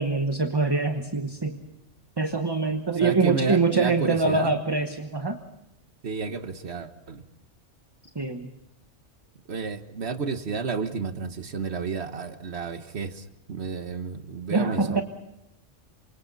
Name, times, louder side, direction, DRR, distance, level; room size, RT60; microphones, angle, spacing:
voice 1, 0.0-1.6 2.2-5.4 8.1-8.5 14.5-15.0, right 3 dB, 20° right, 6 dB, 1.1 m, -24 dB
voice 2, 3.0-4.5 6.0-7.2 9.5-15.0, right 5 dB, 60° right, 9 dB, 1.6 m, -31 dB
28.0 x 25.5 x 4.1 m, 0.89 s
omnidirectional pair, 1.3 m